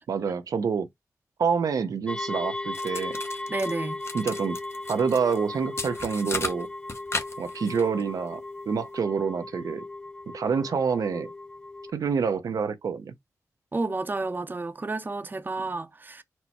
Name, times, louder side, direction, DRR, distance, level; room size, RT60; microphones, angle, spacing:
voice 1, 0.1-0.9 1.4-3.2 4.1-4.6 4.9-6.7 7.4-8.4 8.7-9.8 10.3-11.3 11.9-13.1, right 6 dB, 85° right, 0.5 m, -27 dB
sound 1, 2.1-11.9, left 2 dB, 15° left, 0.4 m, -37 dB
sound 2, 2.7-5.4 5.8-8.0, left 3 dB, 45° left, 0.9 m, -35 dB
voice 2, 3.5-4.0 13.7-16.2, right 3 dB, 30° right, 0.6 m, -31 dB
4.3 x 2.0 x 4.3 m
cardioid pair, 65°, 6 cm